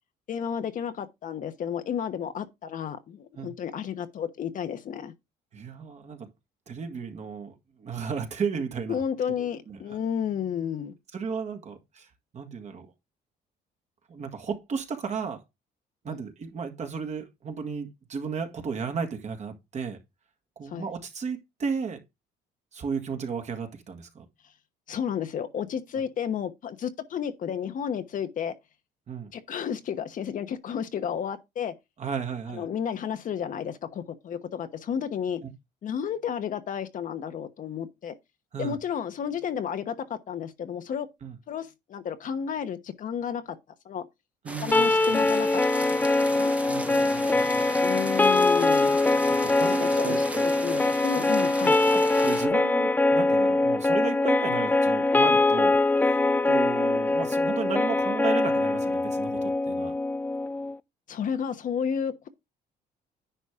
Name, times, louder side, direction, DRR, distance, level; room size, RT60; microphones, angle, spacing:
voice 1, 0.3-5.1 8.9-10.9 16.1-16.2 20.7-20.9 24.9-28.5 29.3-31.7 32.5-35.4 35.8-38.1 38.6-41.1 41.5-43.6 43.8-44.1 44.6-45.6 46.3-46.5 47.8-49.0 49.6-50.1 50.4-51.8 61.1-62.3, left 8 dB, 50° left, 1.1 m, -32 dB
voice 2, 5.5-6.3 6.7-9.0 9.4-10.0 11.1-12.9 14.1-15.4 16.0-20.0 20.6-22.0 22.7-24.3 29.1-29.3 32.0-32.7 38.5-38.8 41.2-41.3 44.4-45.3 46.7-47.8 49.4-50.5 51.2-51.3 51.9-59.9, right 5 dB, 40° right, 1.9 m, -34 dB
sound 1, 44.5-52.5, right 1 dB, 10° right, 1.1 m, -38 dB
sound 2, 44.7-60.8, left 2 dB, 10° left, 0.5 m, -23 dB
10.0 x 5.2 x 3.7 m
cardioid pair, 110°, 17 cm